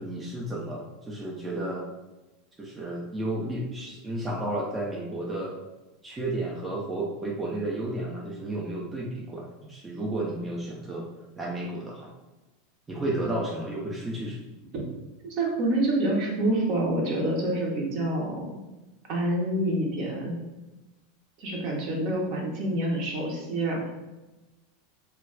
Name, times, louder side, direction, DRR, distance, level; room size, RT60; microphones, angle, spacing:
voice 1, 0.0-1.9 2.6-5.6 6.0-11.1 11.4-12.1 12.9-14.4, right 1 dB, 15° right, -3 dB, 0.5 m, -32 dB
voice 2, 15.2-18.6 19.1-20.4 21.4-23.8, right 1 dB, 50° right, -1 dB, 0.8 m, -27 dB
2.2 x 2.2 x 3.6 m, 1.1 s
figure-of-eight pair, 85°, 0 cm